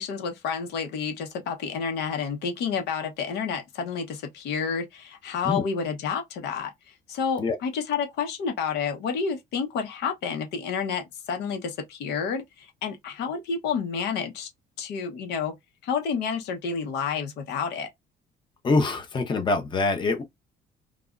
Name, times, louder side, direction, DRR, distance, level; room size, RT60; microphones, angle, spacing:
voice 1, 0.0-6.7 7.1-14.5 14.8-15.6 15.8-17.9, left 6 dB, 80° left, 1.0 m, -30 dB
voice 2, 18.6-20.2, left 3 dB, 30° left, 0.8 m, -24 dB
3.4 x 2.4 x 2.4 m
cardioid pair, 110°, 17 cm